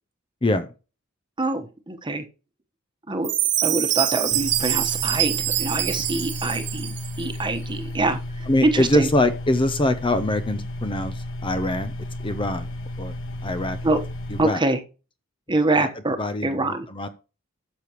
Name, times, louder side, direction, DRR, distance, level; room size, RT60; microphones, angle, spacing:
voice 1, 1.4-2.2 3.1-3.3 3.6-9.1 13.8-14.0 14.4-14.8 15.5-16.2 16.4-16.9, right 2 dB, 20° right, 7 dB, 1.2 m, -25 dB
Chime, 3.2-7.2, right 13 dB, 55° right, 1.3 m, -25 dB
sound 1, 4.3-14.4, left 1 dB, 65° left, 1.6 m, -33 dB
voice 2, 8.5-11.9 12.2-12.7 13.0-13.1 13.4-13.8 14.3-14.6 15.8-15.9 16.2-17.1, left 1 dB, 25° left, 11 dB, 0.6 m, -23 dB
13.0 x 6.8 x 3.0 m, 0.32 s
head